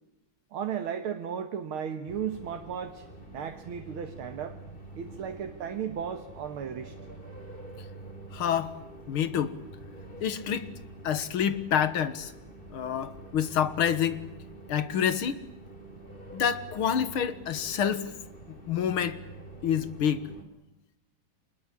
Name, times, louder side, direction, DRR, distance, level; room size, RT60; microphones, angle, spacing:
voice 1, 0.5-3.1 3.3-4.6 5.0-6.9, right 8 dB, 90° right, 2.2 m, -35 dB
sound 1, 2.1-20.4, right 2 dB, 25° left, 3.4 m, -46 dB
voice 2, 8.3-8.8 9.1-9.6 10.2-10.7 11.0-12.3 12.7-14.2 14.7-15.4 16.3-18.1 18.7-19.2 19.6-20.3, left 8 dB, 90° left, 2.2 m, -27 dB
25.5 x 21.0 x 8.7 m
omnidirectional pair, 2.3 m